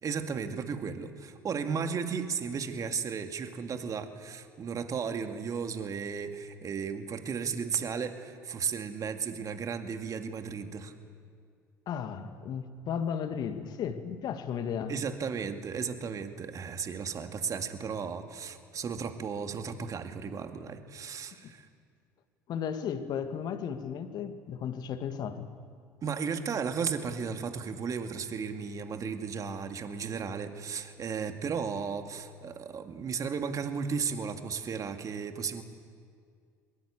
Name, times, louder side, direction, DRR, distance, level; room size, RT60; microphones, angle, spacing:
voice 1, 0.0-10.9 14.9-21.7 26.0-35.6, right 6 dB, 40° right, 2.2 m, -34 dB
voice 2, 11.9-15.0 21.4-21.5 22.5-25.5, left 7 dB, 50° left, 1.9 m, -34 dB
23.0 x 21.0 x 8.4 m
figure-of-eight pair, 60°, 9 cm